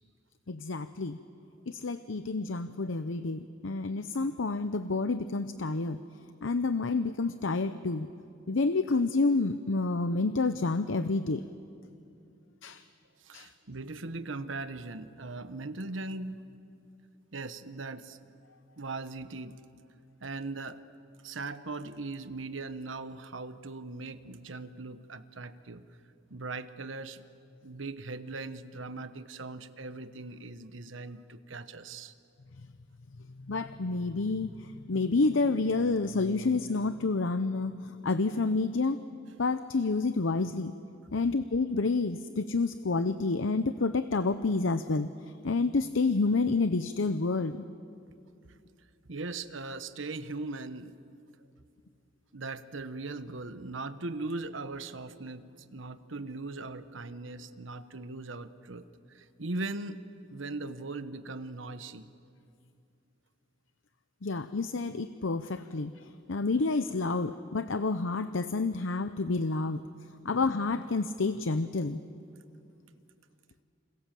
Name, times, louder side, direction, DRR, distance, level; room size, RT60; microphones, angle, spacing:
voice 1, 0.5-1.2 1.7-6.0 6.4-8.1 8.5-11.4 12.6-12.8 13.3-13.5 33.5-39.0 39.4-40.7 41.1-45.1 45.4-47.7 64.2-69.8 70.2-72.0, left 3 dB, 90° left, 11 dB, 0.8 m, -29 dB
voice 2, 13.2-16.4 17.3-18.2 18.8-19.6 20.2-20.8 21.2-25.8 26.3-27.2 27.6-32.1 49.1-51.0 52.3-60.0 60.3-62.1, right 3 dB, 85° right, 11 dB, 1.2 m, -39 dB
29.0 x 26.5 x 7.6 m, 2.5 s
head